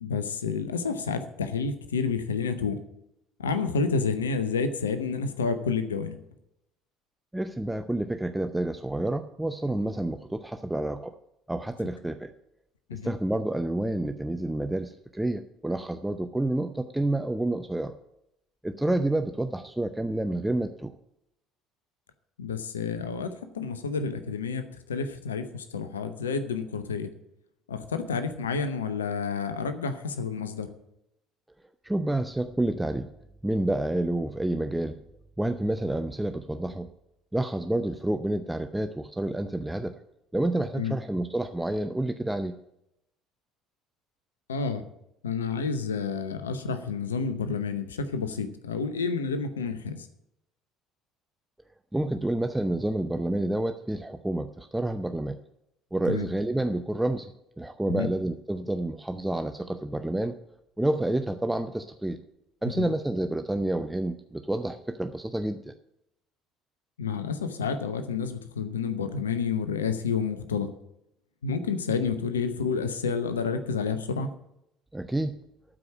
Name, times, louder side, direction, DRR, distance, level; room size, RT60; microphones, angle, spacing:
voice 1, 0.0-2.8 3.4-6.2 12.9-13.1 22.4-27.1 27.7-30.7 40.7-40.9 44.5-44.8 45.2-50.1 56.1-56.3 57.9-58.1 62.6-62.9 67.0-70.7 71.4-74.3, left 5 dB, 80° left, 11 dB, 0.8 m, -29 dB
voice 2, 7.3-11.2 11.5-12.3 12.9-18.0 18.6-20.9 31.8-33.1 33.4-35.0 35.4-36.9 37.3-40.0 40.3-42.6 51.9-55.4 55.9-60.4 60.8-62.2 62.6-65.7 74.9-75.4, right 1 dB, 10° right, 8 dB, 0.6 m, -29 dB
12.0 x 5.0 x 8.4 m, 0.82 s
figure-of-eight pair, 60°, 0 cm